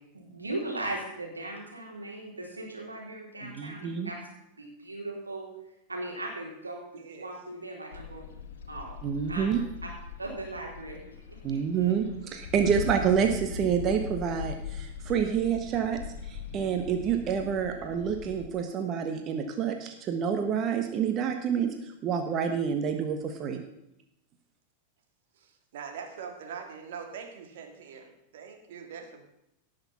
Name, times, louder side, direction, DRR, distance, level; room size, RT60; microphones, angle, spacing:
voice 1, 0.1-4.2 4.6-5.5 5.9-8.2 8.7-9.0 9.3-9.5 10.2-11.1 11.5-11.6, right 2 dB, 80° right, -2 dB, 3.8 m, -38 dB
voice 2, 3.4-4.1 9.0-9.6 11.4-16.0 16.3-21.7 22.0-23.6, right 7 dB, 30° right, 5 dB, 1.3 m, -28 dB
voice 3, 6.9-7.3 25.3-29.3, right 6 dB, 55° right, 4 dB, 2.4 m, -43 dB
sound 1, 7.9-18.4, left 6 dB, 60° left, 1.5 m, -41 dB
17.5 x 6.6 x 5.8 m, 0.83 s
figure-of-eight pair, 90°, 0 cm